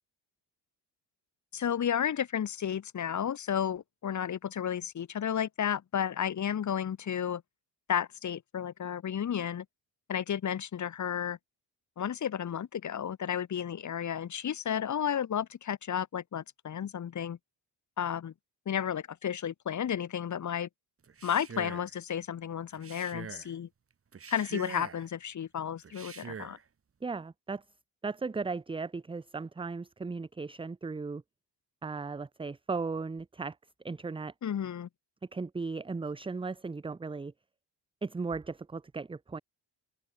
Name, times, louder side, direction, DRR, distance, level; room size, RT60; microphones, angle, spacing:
voice 1, 1.5-7.4 7.9-9.6 10.1-11.4 12.0-17.4 18.0-18.3 18.7-20.7 21.2-23.7 24.3-26.6 34.4-34.9, left 9 dB, 40° left, 0.9 m, -32 dB
Male speech man speaking, 21.0-21.9 22.7-23.5 24.1-25.1 25.8-26.6, right 6 dB, 30° right, 1.2 m, -44 dB
voice 2, 27.0-27.6 28.0-31.2 31.8-33.6 33.8-34.3 35.3-37.3 38.0-39.4, right 4 dB, 15° right, 0.5 m, -36 dB
open air
cardioid pair, 110°, 43 cm